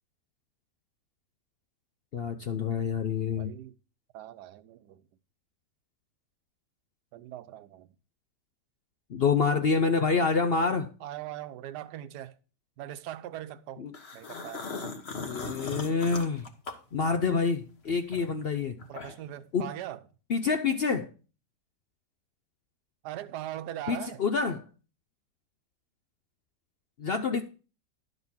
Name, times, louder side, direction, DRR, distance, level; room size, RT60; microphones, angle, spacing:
voice 1, 2.1-3.5 9.1-10.9 13.8-13.9 15.2-16.5 16.9-18.8 19.5-19.7 20.3-21.1 23.9-24.6 27.0-27.4, left 5 dB, 70° left, 0.5 m, -27 dB
voice 2, 3.4-3.8 4.1-5.1 7.1-7.9 11.0-12.4 12.8-13.8 14.1-14.7 18.9-20.0 23.0-24.2, right 12 dB, 75° right, 1.3 m, -40 dB
sound 1, 13.9-17.5 17.9-19.4, left 3 dB, 40° left, 1.3 m, -39 dB
12.0 x 4.1 x 7.1 m
omnidirectional pair, 1.9 m